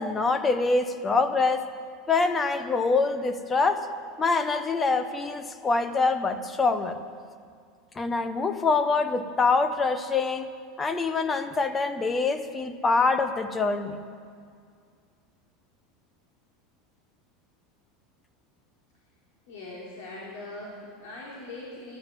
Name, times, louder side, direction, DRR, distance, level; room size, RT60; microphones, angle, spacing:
voice 1, 0.0-1.6 2.1-3.9 4.2-7.0 8.0-10.5 10.8-14.0, left 4 dB, 15° left, 10 dB, 0.8 m, -25 dB
voice 2, 19.5-22.0, left 2 dB, 85° left, -4 dB, 3.2 m, -41 dB
14.0 x 11.5 x 7.5 m, 2.2 s
supercardioid pair, 150°, 0 cm